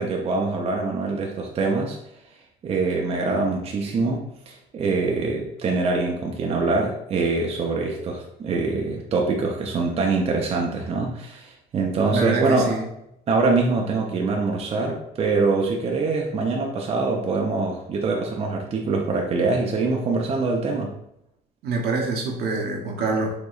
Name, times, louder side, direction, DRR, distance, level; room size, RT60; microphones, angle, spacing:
voice 1, 0.0-2.0 2.6-12.8 13.3-20.9, right 3 dB, 35° right, 0 dB, 0.6 m, -24 dB
voice 2, 12.1-12.9 21.6-23.3, right 3 dB, 70° right, 1 dB, 0.9 m, -25 dB
4.8 x 3.0 x 2.4 m, 0.80 s
cardioid pair, 110°, 17 cm